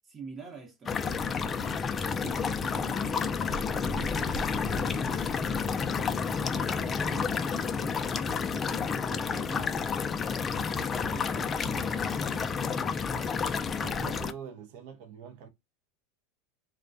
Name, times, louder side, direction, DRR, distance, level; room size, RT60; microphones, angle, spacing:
voice 1, 0.0-1.1 1.4-1.6 2.2-3.4 3.8-5.8 6.4-8.0 8.4-10.0 10.6-13.2, right 4 dB, 30° right, 0.8 m, -48 dB
sound 1, 0.9-14.3, left 5 dB, 25° left, 0.3 m, -30 dB
voice 2, 2.0-2.4 13.8-15.5, right 7 dB, 65° right, 0.5 m, -44 dB
2.3 x 2.1 x 2.5 m
hypercardioid pair, 105°, 0 cm